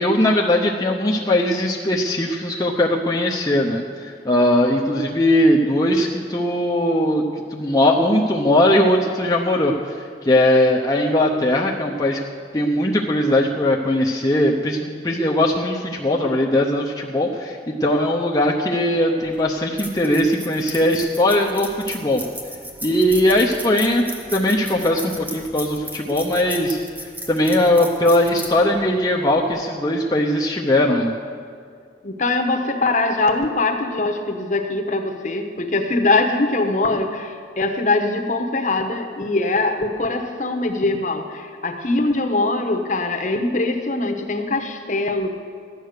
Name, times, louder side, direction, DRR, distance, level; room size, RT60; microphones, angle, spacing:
voice 1, 0.0-7.2 7.5-12.3 12.5-22.2 22.8-26.8 27.3-31.1, left 1 dB, 20° left, -2 dB, 0.7 m, -19 dB
sound 1, 19.2-29.7, equal, 10° right, 1.2 m, -37 dB
voice 2, 32.0-45.3, left 2 dB, 45° left, 4 dB, 1.1 m, -22 dB
13.5 x 9.5 x 6.6 m, 2.2 s
head